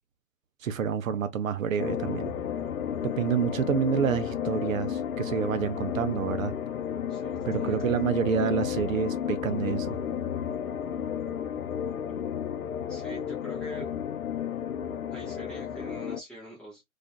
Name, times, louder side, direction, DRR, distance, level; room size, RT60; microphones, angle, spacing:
voice 1, 0.6-2.4 3.0-6.5 7.5-10.0, right 7 dB, 70° right, 0.6 m, -28 dB
sound 1, 1.8-16.2, left 8 dB, 85° left, 0.5 m, -32 dB
voice 2, 7.1-7.8 12.9-13.9 15.1-16.8, right 1 dB, ahead, 0.6 m, -43 dB
2.5 x 2.3 x 2.3 m
figure-of-eight pair, 130°, 42 cm